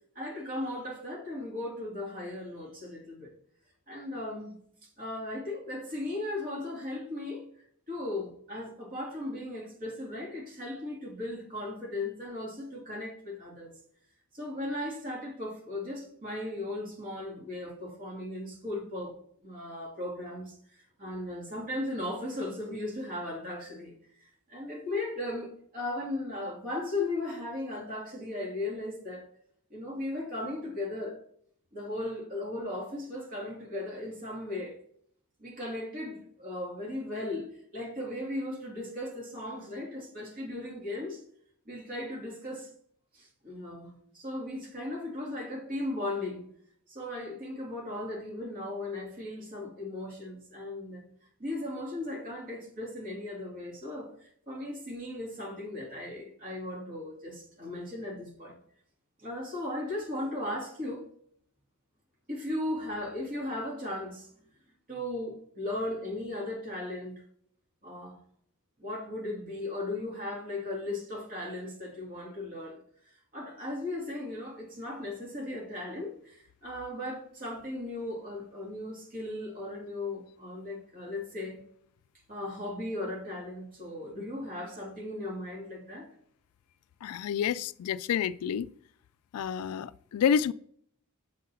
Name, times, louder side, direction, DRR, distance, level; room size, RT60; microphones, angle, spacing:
voice 1, 0.2-3.3 3.9-4.5 4.8-7.5 7.9-13.7 14.3-29.3 29.7-31.2 31.7-34.8 35.4-41.2 41.7-42.7 43.1-46.5 46.9-51.1 51.4-58.6 59.2-61.1 62.3-64.3 64.9-67.2 67.8-68.2 68.8-72.8 73.3-81.6 82.3-86.1, left 1 dB, 40° right, 2.1 m, -37 dB
voice 2, 87.0-88.7 89.3-90.5, left 8 dB, 80° left, 0.3 m, -29 dB
7.4 x 3.8 x 4.2 m
head